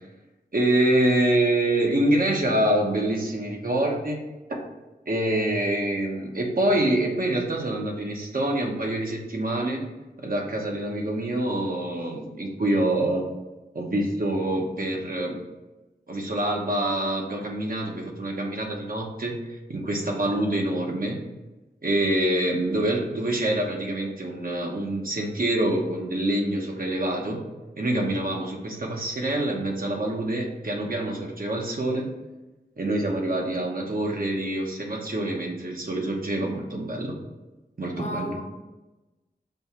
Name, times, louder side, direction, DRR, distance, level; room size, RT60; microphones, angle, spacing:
voice 1, 0.5-4.2 4.5-4.6 5.1-9.8 10.2-13.2 13.7-15.4 16.1-21.2 21.8-27.4 27.8-32.1 32.8-37.1 37.8-38.4, right 1 dB, 55° right, 0 dB, 0.9 m, -26 dB
voice 2, 20.1-20.6 37.9-38.4, left 1 dB, 40° left, 1 dB, 0.9 m, -36 dB
5.5 x 2.3 x 4.2 m, 1.1 s
wide cardioid pair, 50°, 18 cm